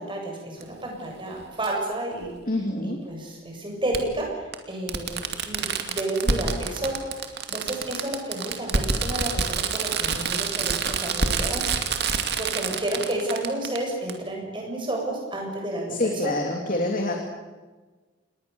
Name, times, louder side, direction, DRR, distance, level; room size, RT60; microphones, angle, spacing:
voice 1, 0.0-2.4 2.8-7.0 7.5-16.3, right 1 dB, 25° right, 0 dB, 7.7 m, -31 dB
Fireworks, 0.6-0.7 2.2-2.3 3.9-4.0 4.5-4.6 4.9-13.8 14.1-14.2, right 5 dB, 60° right, 2.4 m, -27 dB
voice 2, 2.5-3.0 15.9-17.1, left 1 dB, 45° left, 2 dB, 2.9 m, -26 dB
28.5 x 20.5 x 7.1 m, 1.3 s
head